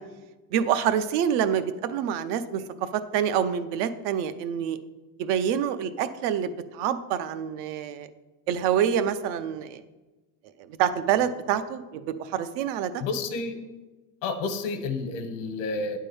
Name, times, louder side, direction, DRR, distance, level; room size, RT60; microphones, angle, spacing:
voice 1, 0.5-4.8 5.2-8.1 8.5-9.8 10.8-13.0, right 9 dB, 75° right, 12 dB, 0.7 m, -26 dB
voice 2, 13.0-13.5 14.2-16.0, left 3 dB, 85° left, 7 dB, 1.2 m, -30 dB
9.0 x 3.7 x 6.9 m, 1.2 s
cardioid pair, 170°, 36 cm